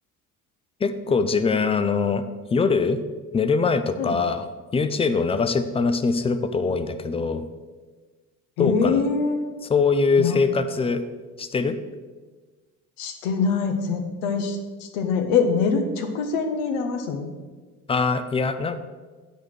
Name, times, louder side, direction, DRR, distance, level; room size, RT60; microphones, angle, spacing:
voice 1, 0.8-2.2 2.5-3.0 3.3-4.5 4.7-7.5 8.6-9.0 9.7-11.0 11.4-11.8 17.9-18.8, left 4 dB, 15° left, 10 dB, 0.4 m, -22 dB
voice 2, 8.6-9.6 10.2-10.4 13.0-17.3, left 5 dB, 60° left, 5 dB, 1.1 m, -24 dB
8.1 x 4.8 x 6.1 m, 1.4 s
figure-of-eight pair, 55°, 45 cm